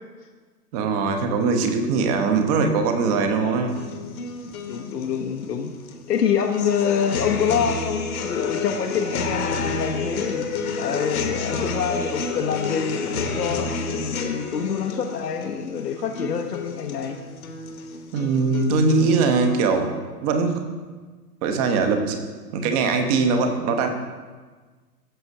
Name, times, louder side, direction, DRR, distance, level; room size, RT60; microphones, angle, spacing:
voice 1, 0.7-3.7 18.1-19.9 20.2-20.6 21.4-22.2 22.5-23.9, right 4 dB, 25° right, 6 dB, 0.7 m, -21 dB
sound 1, 3.7-19.7, left 4 dB, 60° left, 1.1 m, -30 dB
voice 2, 4.4-5.7 6.1-10.4 10.8-17.2, left 7 dB, 75° left, 1 dB, 0.8 m, -26 dB
13.5 x 6.9 x 2.7 m, 1.4 s
figure-of-eight pair, 115°, 48 cm